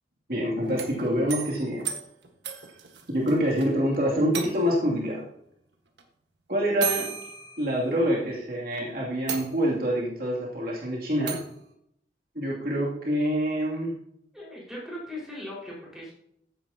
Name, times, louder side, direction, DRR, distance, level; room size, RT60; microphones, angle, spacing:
voice 1, 0.3-1.9 3.1-5.2 6.5-7.1 7.6-11.4 12.3-14.0, equal, 55° right, -4 dB, 2.7 m, -26 dB
sound 1, 0.6-3.7 3.9-4.0 4.3-4.9 6.0-6.1 6.8-8.2 8.7-8.8 9.3-10.0 11.3-11.6, right 8 dB, 85° right, 1.5 m, -35 dB
voice 2, 14.3-16.1, left 1 dB, 5° right, -5 dB, 5.0 m, -39 dB
15.5 x 9.4 x 2.9 m, 0.73 s
head